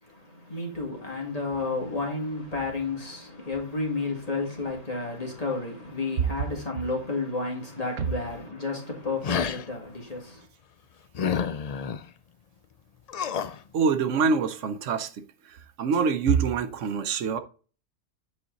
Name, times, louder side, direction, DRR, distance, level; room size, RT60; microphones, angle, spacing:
voice 1, 0.0-10.5, left 3 dB, 30° left, 2.3 m, -32 dB
sound 1, 9.2-9.6 11.1-12.0 13.1-13.6, left 7 dB, 80° left, 0.3 m, -28 dB
voice 2, 13.7-15.1 15.5-17.4, right 5 dB, 75° right, 1.0 m, -25 dB
8.8 x 4.3 x 3.9 m
omnidirectional pair, 1.3 m